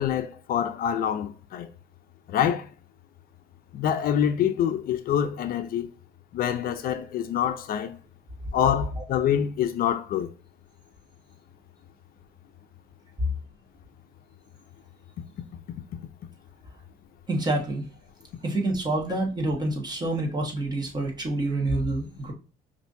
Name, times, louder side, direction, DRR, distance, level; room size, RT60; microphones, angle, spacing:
voice 1, 0.0-1.7 2.3-2.6 3.7-5.9 6.3-7.9 8.5-10.3, left 9 dB, 60° left, 0.5 m, -26 dB
voice 2, 17.3-17.8 18.4-22.3, right 2 dB, 25° right, 1.4 m, -27 dB
5.5 x 2.6 x 2.6 m
cardioid pair, 110°, 17 cm